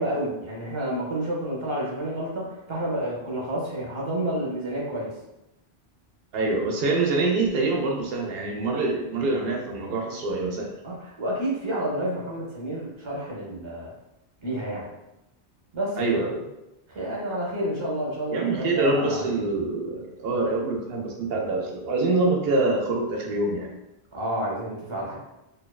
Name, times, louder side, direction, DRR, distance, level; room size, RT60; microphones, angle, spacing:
voice 1, 0.0-5.1 10.8-13.9 14.4-14.9 15.7-16.3 16.9-19.4 24.1-25.1, right 1 dB, 35° right, -4 dB, 0.6 m, -30 dB
voice 2, 6.3-10.7 16.0-16.4 18.3-23.7, right 3 dB, 70° right, 0 dB, 0.8 m, -25 dB
2.6 x 2.3 x 2.2 m, 0.91 s
omnidirectional pair, 1.0 m